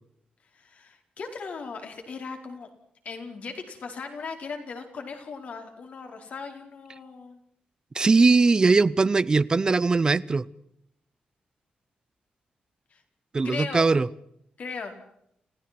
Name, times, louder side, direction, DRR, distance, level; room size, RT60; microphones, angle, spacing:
voice 1, 0.5-2.7 3.0-7.4 12.9-13.0 13.4-13.9 14.6-15.0, left 4 dB, 55° left, 4.8 m, -38 dB
voice 2, 7.9-10.4 13.3-14.1, right 4 dB, 25° right, 0.7 m, -20 dB
29.5 x 17.0 x 6.1 m
wide cardioid pair, 145°, 3 cm